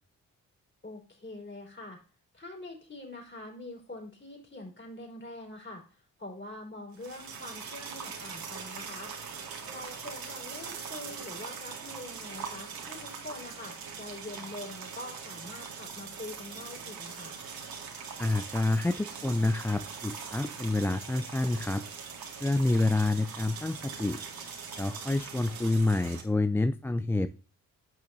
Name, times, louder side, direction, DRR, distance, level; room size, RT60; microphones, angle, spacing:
voice 1, 0.8-2.0 2.3-9.1 9.7-17.3, left 2 dB, 30° left, 0 dB, 4.5 m, -44 dB
sound 1, 6.9-26.2, right 6 dB, 75° right, 2.1 m, -42 dB
voice 2, 18.2-21.8 22.4-24.2 24.8-27.4, left 2 dB, 5° left, 12 dB, 0.3 m, -28 dB
10.5 x 6.4 x 2.7 m, 0.37 s
supercardioid pair, 60°, 36 cm